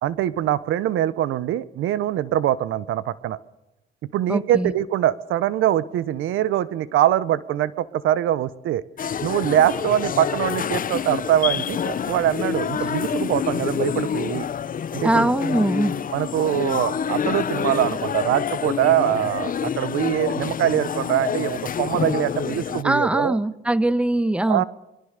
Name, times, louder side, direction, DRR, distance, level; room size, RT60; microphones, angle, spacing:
voice 1, 0.0-3.4 4.0-8.8 9.2-14.5 14.9-15.3 16.1-23.4 24.5-24.6, right 12 dB, 85° right, 17 dB, 1.1 m, -23 dB
voice 2, 4.3-4.7 12.7-12.9 15.0-15.9 22.8-24.6, right 1 dB, 5° right, 16 dB, 1.1 m, -22 dB
sound 1, 9.0-22.8, left 8 dB, 45° left, 0.8 m, -27 dB
26.0 x 22.5 x 6.7 m, 0.93 s
cardioid pair, 90°, 20 cm